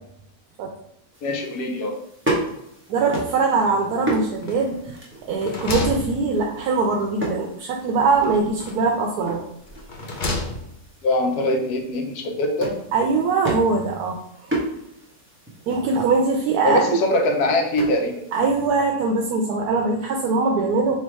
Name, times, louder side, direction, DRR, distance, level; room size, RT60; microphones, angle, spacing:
sound 1, 1.1-18.7, right 1 dB, 10° right, 0.8 m, -34 dB
voice 1, 1.2-2.0 11.0-12.8 16.6-18.1, left 1 dB, 85° left, 3 dB, 1.3 m, -22 dB
voice 2, 2.9-4.9 5.3-9.4 12.9-14.2 14.5-14.6 15.7-17.0 18.3-21.0, right 4 dB, 80° right, 1 dB, 1.1 m, -22 dB
sound 2, 4.4-4.9 5.2-6.8 8.1-9.0 9.7-10.9, left 2 dB, 60° left, 0.5 m, -31 dB
3.4 x 2.8 x 4.5 m, 0.77 s
omnidirectional pair, 1.6 m